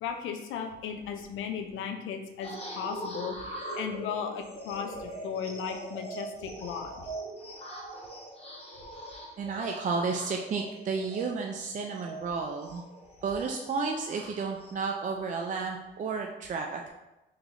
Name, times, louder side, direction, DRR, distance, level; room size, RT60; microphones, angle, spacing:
voice 1, 0.0-7.1, left 7 dB, 85° left, 5 dB, 0.5 m, -36 dB
sound 1, 2.4-14.7, right 1 dB, 30° left, 1.1 m, -42 dB
voice 2, 9.4-12.8 13.2-16.9, right 4 dB, 40° right, 1 dB, 0.4 m, -32 dB
3.1 x 3.0 x 3.7 m, 0.99 s
cardioid pair, 90°, 20 cm